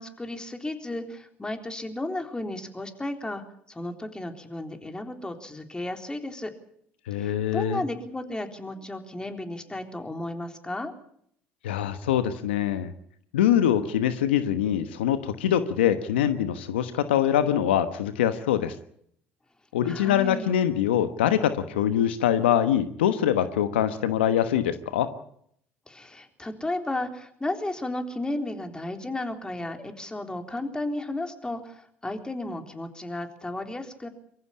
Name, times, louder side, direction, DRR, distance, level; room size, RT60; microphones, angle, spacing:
voice 1, 0.0-6.5 7.1-10.9 19.9-20.5 25.9-34.1, left 2 dB, 15° left, 6 dB, 3.8 m, -34 dB
voice 2, 7.1-7.8 11.6-12.9 13.3-18.7 19.7-25.1, left 10 dB, 90° left, 11 dB, 1.2 m, -24 dB
23.5 x 15.0 x 8.7 m, 0.69 s
hypercardioid pair, 70°, 6 cm